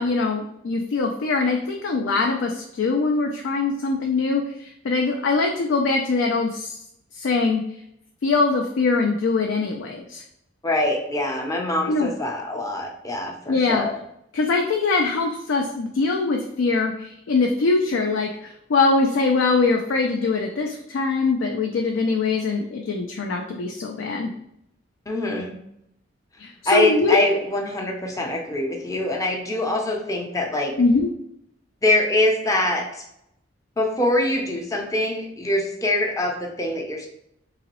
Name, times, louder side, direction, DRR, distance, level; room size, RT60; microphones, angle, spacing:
voice 1, 0.0-6.7 7.2-7.6 8.2-10.2 11.9-12.1 13.5-13.9 14.3-24.3 26.4-27.2 30.8-31.1, left 3 dB, 75° left, 2 dB, 0.4 m, -22 dB
voice 2, 10.6-14.0 25.1-25.5 26.7-30.7 31.8-33.0 33.8-37.1, left 1 dB, 15° left, 1 dB, 0.6 m, -24 dB
3.8 x 2.9 x 2.9 m, 0.78 s
head